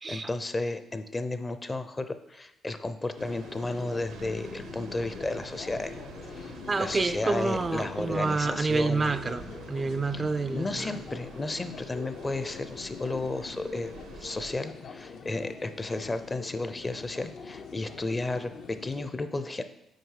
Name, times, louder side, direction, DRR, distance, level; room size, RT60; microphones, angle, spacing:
voice 1, 0.1-5.9 6.2-9.1 10.1-10.2 10.5-19.6, left 2 dB, 25° left, 10 dB, 0.5 m, -33 dB
sound 1, 3.2-19.1, left 5 dB, 65° left, 0.6 m, -44 dB
sound 2, 3.2-14.5, right 6 dB, 90° right, 0.7 m, -48 dB
voice 2, 6.7-11.0, right 3 dB, 30° right, 12 dB, 0.3 m, -28 dB
6.5 x 4.3 x 4.8 m, 0.84 s
cardioid pair, 90°, 0 cm